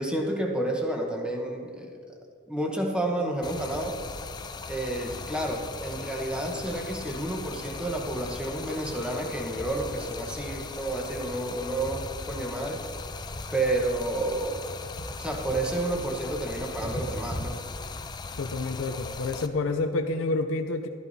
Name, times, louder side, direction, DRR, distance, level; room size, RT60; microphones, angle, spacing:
voice 1, 0.0-1.9 2.5-4.0 4.7-12.8 13.5-14.7 15.2-17.6, right 1 dB, 5° right, 1 dB, 1.0 m, -30 dB
Stream, 3.4-19.5, left 4 dB, 20° left, 0.4 m, -39 dB
sound 1, 5.0-17.4, equal, 50° left, 1.6 m, -44 dB
voice 2, 18.4-20.9, left 3 dB, 85° left, 6 dB, 0.5 m, -28 dB
12.5 x 11.5 x 2.7 m, 2.2 s
head